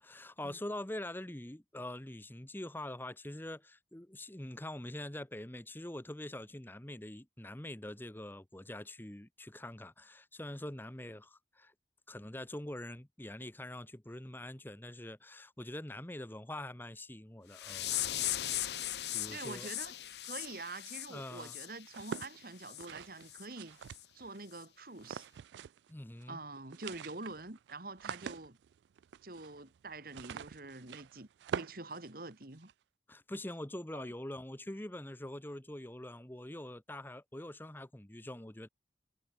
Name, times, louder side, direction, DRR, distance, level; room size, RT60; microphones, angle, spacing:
voice 1, 0.0-11.7 12.1-18.2 18.6-19.7 21.1-21.6 25.9-26.4 33.1-38.7, left 1 dB, 10° left, 0.9 m, -44 dB
sound 1, 17.5-22.3 22.6-22.9 23.3-23.5 23.9-24.1 24.5-24.6, left 13 dB, 70° left, 1.1 m, -38 dB
voice 2, 19.3-19.9 20.2-23.8 24.1-25.3 26.3-28.6 29.2-32.7 33.9-34.1, right 3 dB, 55° right, 2.4 m, -46 dB
sound 2, 21.9-24.4 25.0-25.9 26.2-26.3 26.6-32.7, right 7 dB, 75° right, 0.3 m, -45 dB
head